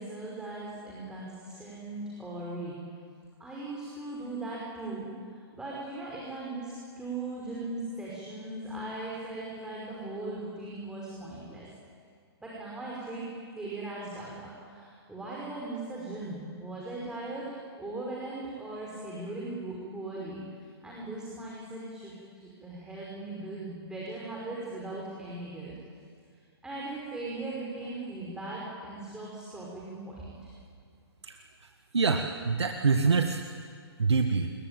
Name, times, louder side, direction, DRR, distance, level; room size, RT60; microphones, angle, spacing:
voice 1, 0.0-2.7 3.4-11.7 12.4-13.3 13.5-20.4 20.8-25.7 26.6-30.4, right 2 dB, 5° right, -5 dB, 5.4 m, -39 dB
voice 2, 31.9-33.4 34.0-34.5, right 4 dB, 85° right, 5 dB, 1.8 m, -25 dB
26.5 x 22.0 x 9.2 m, 2.1 s
hypercardioid pair, 140°, 14 cm